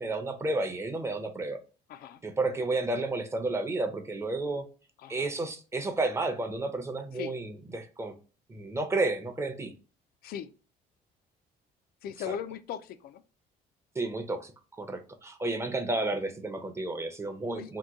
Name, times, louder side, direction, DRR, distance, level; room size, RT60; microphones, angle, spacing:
voice 1, 0.0-1.6 2.2-4.7 5.1-8.1 8.5-9.7 12.3-12.4 14.0-14.5 14.8-17.8, right 2 dB, 15° right, 5 dB, 0.6 m, -31 dB
voice 2, 1.9-2.2 5.0-5.3 7.1-7.3 10.2-10.5 12.0-13.2 17.6-17.7, left 9 dB, 65° left, 13 dB, 0.4 m, -38 dB
2.9 x 2.2 x 3.5 m, 0.35 s
cardioid pair, 110°, 17 cm